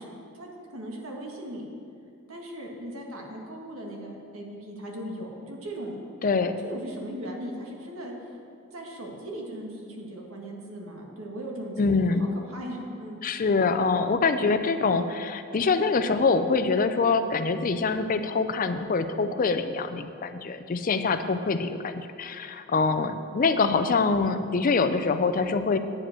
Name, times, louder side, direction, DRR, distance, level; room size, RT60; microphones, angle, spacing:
voice 1, 0.0-1.7 2.3-5.9 6.6-8.1 8.7-13.2, right 1 dB, 85° right, -1 dB, 1.7 m, -38 dB
voice 2, 6.2-6.6 11.8-12.3 13.2-25.8, left 4 dB, 40° left, 9 dB, 0.4 m, -25 dB
9.6 x 5.1 x 7.5 m, 2.4 s
head